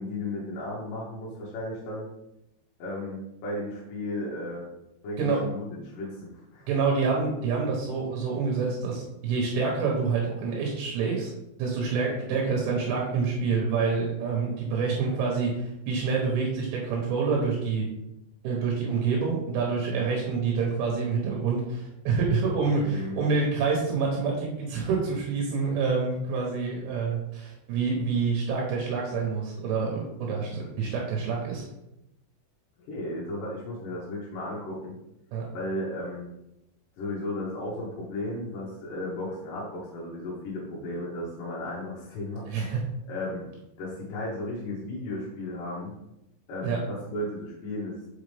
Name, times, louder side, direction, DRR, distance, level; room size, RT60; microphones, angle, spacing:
voice 1, 0.0-2.1 2.8-4.7 5.0-6.7 22.8-23.2 32.9-35.0 35.5-36.3 37.0-42.7 43.1-43.5 43.8-45.9 46.5-48.1, left 1 dB, 70° left, -5 dB, 2.1 m, -35 dB
voice 2, 6.7-11.3 11.6-17.9 18.4-31.7 35.3-35.5 42.5-42.8 46.6-46.8, right 5 dB, 75° right, -1 dB, 3.0 m, -27 dB
6.3 x 4.9 x 3.3 m, 0.87 s
omnidirectional pair, 5.4 m